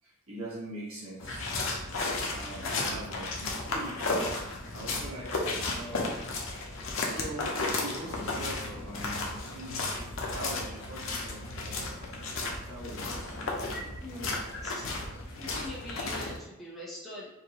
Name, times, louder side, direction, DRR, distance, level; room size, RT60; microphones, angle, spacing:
voice 1, 0.0-2.0 2.3-6.3 7.0-11.9 12.4-14.3, right 1 dB, 70° right, -6 dB, 1.5 m, -43 dB
sound 1, 1.2-16.4, left 2 dB, 65° left, 0.8 m, -34 dB
voice 2, 2.6-3.0 13.7-15.0 15.4-17.3, left 1 dB, ahead, -7 dB, 0.8 m, -43 dB
4.7 x 2.7 x 2.9 m, 0.96 s
head